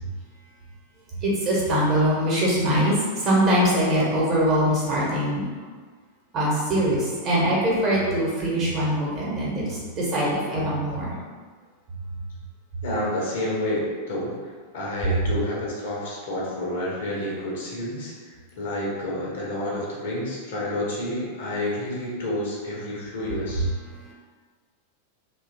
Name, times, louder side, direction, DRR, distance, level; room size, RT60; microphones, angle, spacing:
voice 1, 1.2-2.9 3.2-5.4 6.3-9.7 9.9-11.1, equal, 30° right, -6 dB, 0.9 m, -22 dB
voice 2, 12.8-14.4 14.7-23.6, left 1 dB, 60° left, -4 dB, 0.7 m, -29 dB
2.8 x 2.2 x 2.6 m, 1.5 s
figure-of-eight pair, 90°, 0 cm